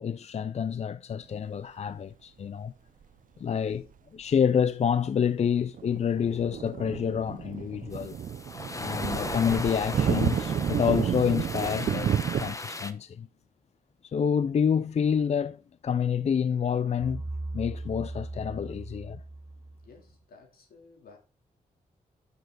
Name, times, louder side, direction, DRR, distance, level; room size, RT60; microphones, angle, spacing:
voice 1, 0.0-2.7 3.4-3.9 4.1-8.2 8.8-12.1 12.4-13.3 14.0-17.2 17.5-19.2, left 7 dB, 45° left, 0.4 m, -28 dB
sound 1, 3.7-3.8 5.7-12.5, right 8 dB, 65° right, 0.5 m, -31 dB
sound 2, 7.9-12.9, left 2 dB, 20° left, 1.1 m, -37 dB
sound 3, 17.0-20.1, right 2 dB, 25° right, 1.0 m, -38 dB
voice 2, 19.8-21.2, left 4 dB, 80° left, 3.3 m, -55 dB
9.1 x 6.8 x 3.9 m
cardioid pair, 80°, 15 cm